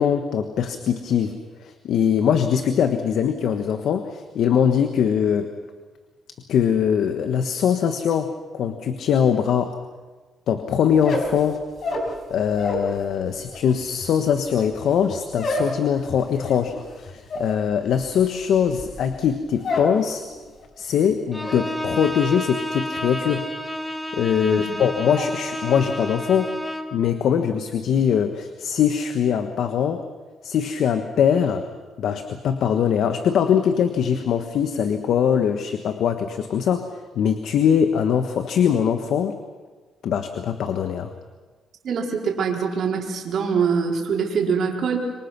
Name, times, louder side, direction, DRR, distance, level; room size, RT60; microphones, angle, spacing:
voice 1, 0.0-5.5 6.5-9.8 10.5-11.6 12.3-20.2 20.8-23.5 24.1-26.5 26.9-30.0 30.4-31.6 32.0-39.4 40.0-41.1, left 8 dB, 75° left, 7 dB, 1.4 m, -22 dB
sound 1, 10.9-12.9 13.2-20.0 20.3-20.8 21.1-21.6, left 2 dB, 60° left, 5.0 m, -30 dB
Bowed string instrument, 21.3-27.0, equal, 5° left, 2.0 m, -30 dB
voice 2, 41.8-45.1, right 5 dB, 65° right, -1 dB, 4.4 m, -24 dB
26.5 x 24.0 x 6.1 m, 1.3 s
cardioid pair, 90°, 0 cm